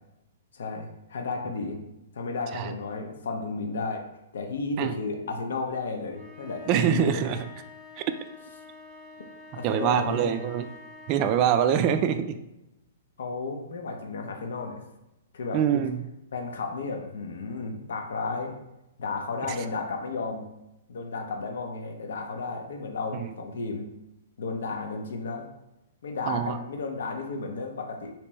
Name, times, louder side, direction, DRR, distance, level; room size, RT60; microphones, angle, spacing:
voice 1, 0.5-1.8 2.1-4.0 4.3-7.2 9.2-9.3 9.6-10.4 13.2-14.8 15.3-15.6 16.3-18.6 19.0-20.5 20.9-23.9 24.4-25.5 26.0-28.1, left 3 dB, 75° left, 3 dB, 0.6 m, -33 dB
sound 1, 6.1-11.5, left 3 dB, 15° right, 0.8 m, -47 dB
voice 2, 6.7-7.5 8.0-8.1 9.6-10.7 11.1-12.4 15.5-16.0 19.5-19.6 23.1-23.3 26.3-26.6, right 9 dB, 35° right, 10 dB, 0.3 m, -24 dB
3.3 x 2.9 x 3.1 m, 0.92 s
hypercardioid pair, 130°, 0 cm